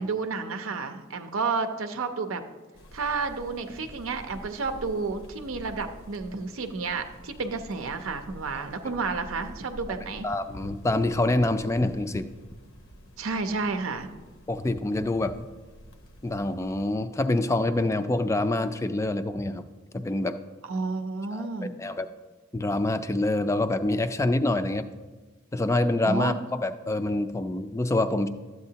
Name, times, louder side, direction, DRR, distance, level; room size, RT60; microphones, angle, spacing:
voice 1, 0.0-2.4 2.9-10.3 13.2-14.1 20.6-21.7 26.0-26.4, right 4 dB, 85° right, 7 dB, 0.6 m, -31 dB
sound 1, 2.7-16.9, equal, 85° left, 1.0 m, -48 dB
voice 2, 10.2-12.3 14.5-15.5 16.2-19.6 19.9-20.4 21.3-21.4 21.8-22.1 22.5-24.9 25.5-26.3 26.6-28.3, left 2 dB, 15° left, 10 dB, 0.3 m, -26 dB
12.5 x 7.9 x 2.8 m, 1.3 s
head